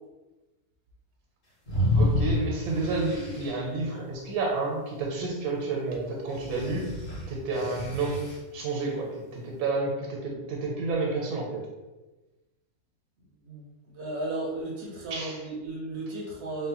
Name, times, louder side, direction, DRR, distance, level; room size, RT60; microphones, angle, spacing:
sound 1, 1.7-3.5 6.3-8.4, left 1 dB, 50° left, 1.2 m, -29 dB
voice 1, 1.9-7.0 7.3-8.3 8.5-11.7 15.1-15.4, right 3 dB, 85° right, -1 dB, 1.1 m, -30 dB
voice 2, 13.5-16.7, right 2 dB, 65° right, -2 dB, 0.7 m, -35 dB
3.4 x 2.1 x 2.8 m, 1.1 s
omnidirectional pair, 1.6 m